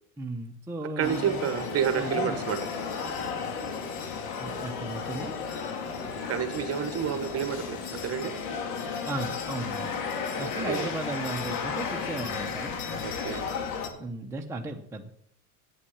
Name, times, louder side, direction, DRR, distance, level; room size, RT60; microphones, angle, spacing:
voice 1, 0.2-2.4 4.4-5.4 9.1-9.9 10.4-12.7 14.0-15.1, right 2 dB, 5° right, 1 dB, 0.9 m, -36 dB
sound 1, 1.0-13.9, left 5 dB, 85° left, 2.2 m, -34 dB
voice 2, 1.0-2.6 6.3-8.3 10.4-10.9 13.0-13.4, right 8 dB, 35° right, 10 dB, 1.3 m, -30 dB
8.6 x 8.3 x 7.2 m, 0.69 s
supercardioid pair, 115°, 44 cm